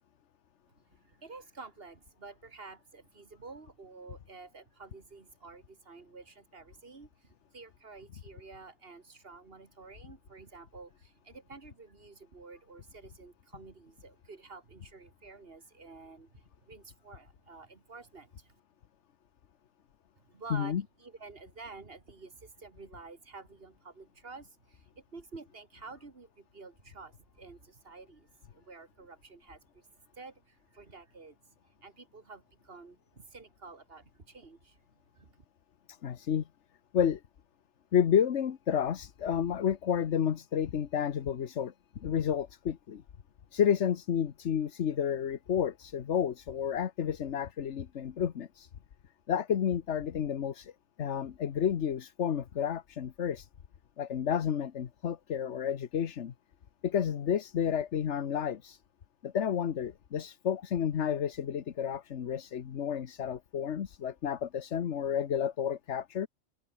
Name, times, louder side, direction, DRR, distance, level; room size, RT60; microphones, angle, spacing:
voice 1, 0.9-18.5 20.3-29.9 30.1-31.4 31.6-34.8 35.1-35.3, right 4 dB, 50° right, 2.6 m, -50 dB
voice 2, 20.5-20.8 35.9-36.5 36.9-37.2 37.9-43.0 43.5-48.7 49.3-50.7 51.0-53.5 54.0-56.3 56.8-58.8 59.2-66.3, left 8 dB, 65° left, 1.3 m, -31 dB
open air
omnidirectional pair, 1.3 m